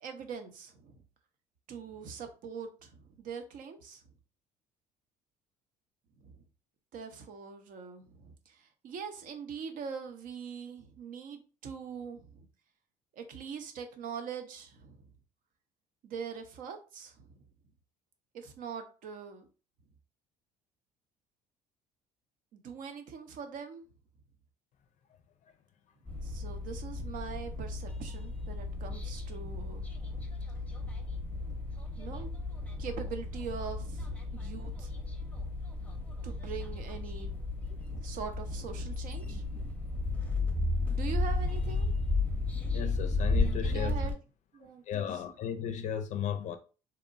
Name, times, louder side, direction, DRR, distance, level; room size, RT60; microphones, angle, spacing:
voice 1, 0.0-1.0 1.7-4.0 6.2-6.4 6.9-12.5 13.1-15.1 16.0-17.4 18.3-19.5 22.5-23.9 26.2-29.9 32.0-32.3 32.6-35.0 36.2-37.4 37.7-39.4 40.9-42.3 43.6-44.1 44.5-45.2, right 6 dB, 60° right, 0.6 m, -43 dB
sound 1, 26.1-44.1, left 2 dB, 10° left, 0.7 m, -34 dB
voice 2, 42.7-44.0 44.9-46.6, left 8 dB, 50° left, 0.4 m, -35 dB
2.9 x 2.1 x 2.5 m
hypercardioid pair, 70°, 16 cm